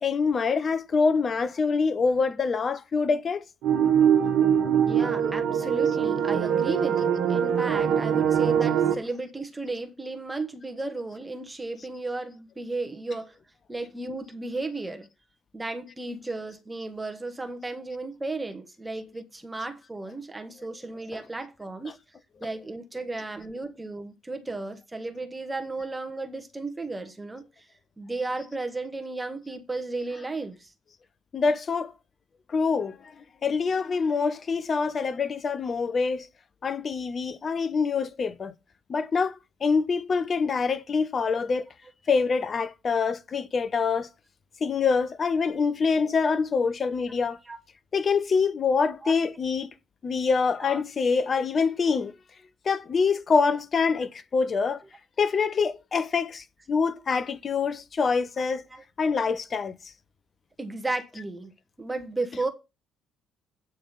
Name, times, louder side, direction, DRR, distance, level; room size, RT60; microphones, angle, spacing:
voice 1, 0.0-3.4 21.8-21.9 23.1-23.2 31.3-31.9 32.5-33.0 33.4-36.3 36.6-38.5 38.9-41.7 42.1-44.1 44.6-47.4 47.9-49.7 50.0-52.1 52.7-54.8 55.2-58.6 59.0-59.7 62.3-62.4, left 5 dB, 40° left, 0.7 m, -25 dB
sound 1, 3.6-8.9, right 8 dB, 60° right, 1.2 m, -23 dB
voice 2, 4.8-13.4 13.7-15.1 15.5-21.9 22.4-27.7 28.0-30.7 47.4-47.6 49.0-49.2 50.6-50.8 58.4-58.8 60.6-61.5 61.8-62.5, right 2 dB, 15° right, 1.1 m, -34 dB
8.8 x 3.6 x 6.8 m
figure-of-eight pair, 45°, 0 cm